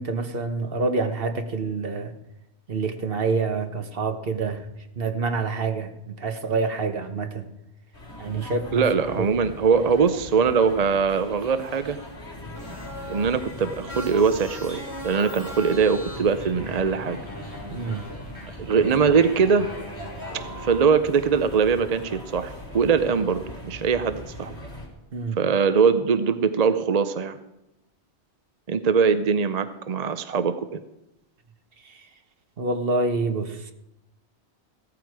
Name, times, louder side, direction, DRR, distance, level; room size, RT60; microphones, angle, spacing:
voice 1, 0.0-2.1 2.7-4.6 5.0-7.5 8.2-8.8 9.2-9.4 17.7-18.1 25.1-25.4 31.8-32.0 32.6-33.6, right 3 dB, 60° right, 7 dB, 1.3 m, -27 dB
sound 1, 7.9-24.9, left 1 dB, 75° left, 3.7 m, -40 dB
voice 2, 8.7-12.0 13.1-17.2 18.6-19.7 20.3-24.6 25.4-27.4 28.7-30.8, right 5 dB, 45° right, 11 dB, 0.7 m, -22 dB
sound 2, 12.5-20.8, equal, 15° right, 6.5 m, -40 dB
16.0 x 13.5 x 4.7 m, 0.90 s
omnidirectional pair, 1.1 m